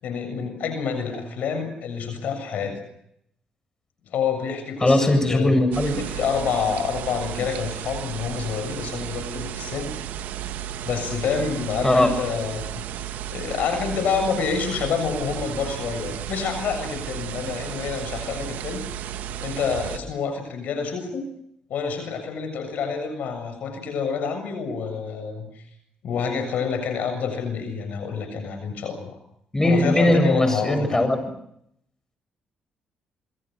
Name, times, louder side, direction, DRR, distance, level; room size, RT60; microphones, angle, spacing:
voice 1, 0.0-2.8 4.1-5.6 5.9-10.0 10.9-12.7 13.3-19.0 19.4-21.2 21.7-25.5 26.0-29.2 29.6-30.8, left 6 dB, 70° left, 8 dB, 7.1 m, -28 dB
voice 2, 4.8-6.1 11.8-12.1 29.5-31.3, left 1 dB, 15° left, 8 dB, 7.7 m, -19 dB
sound 1, 5.7-20.0, right 10 dB, 80° right, 1.7 m, -33 dB
28.0 x 22.5 x 6.6 m, 0.73 s
supercardioid pair, 60°, 3 cm